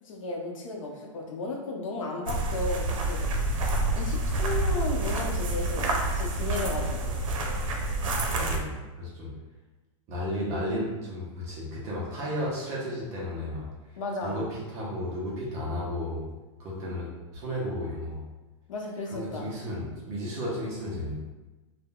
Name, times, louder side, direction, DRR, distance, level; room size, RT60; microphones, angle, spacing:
voice 1, 0.0-3.2 4.0-7.2 14.0-14.4 18.7-19.5, left 2 dB, 85° left, 0 dB, 0.7 m, -34 dB
sound 1, 2.3-8.6, right 2 dB, 85° right, 0.5 m, -28 dB
voice 2, 8.3-9.3 10.1-16.3 16.6-18.2 19.1-21.1, left 1 dB, 20° right, -5 dB, 0.4 m, -33 dB
3.5 x 2.0 x 2.3 m, 1.1 s
supercardioid pair, 175°, 16 cm